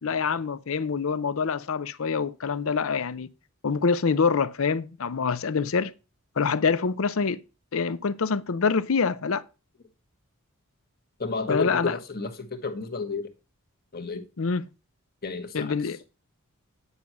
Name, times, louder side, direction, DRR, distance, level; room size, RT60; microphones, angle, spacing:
voice 1, 0.0-3.3 3.6-5.9 6.4-7.4 7.7-9.4 11.5-12.0 14.4-14.7 15.5-16.0, left 5 dB, 65° left, 0.6 m, -25 dB
voice 2, 11.2-13.3 13.9-14.2 15.2-15.7, left 4 dB, 45° left, 1.4 m, -31 dB
9.7 x 5.5 x 6.0 m
head